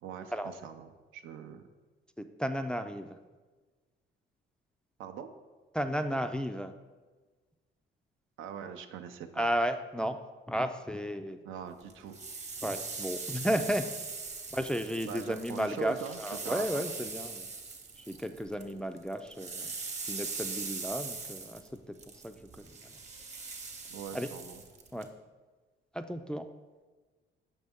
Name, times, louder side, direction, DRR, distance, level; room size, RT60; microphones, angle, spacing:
voice 1, 0.0-1.6 5.0-5.3 8.4-9.5 11.4-12.2 15.1-16.8 23.9-24.6, right 8 dB, 85° right, 7 dB, 0.5 m, -42 dB
voice 2, 2.2-3.2 5.7-6.7 9.4-10.2 10.5-11.4 12.6-13.9 14.5-17.5 18.0-19.7 20.1-22.0 22.2-22.7 24.1-24.3 24.9-25.1 25.9-26.5, equal, 5° left, 7 dB, 0.3 m, -33 dB
sound 1, 11.9-18.7 19.0-25.1, right 4 dB, 35° right, 0.9 m, -41 dB
6.0 x 5.3 x 3.5 m, 1.3 s
cardioid pair, 90°, 20 cm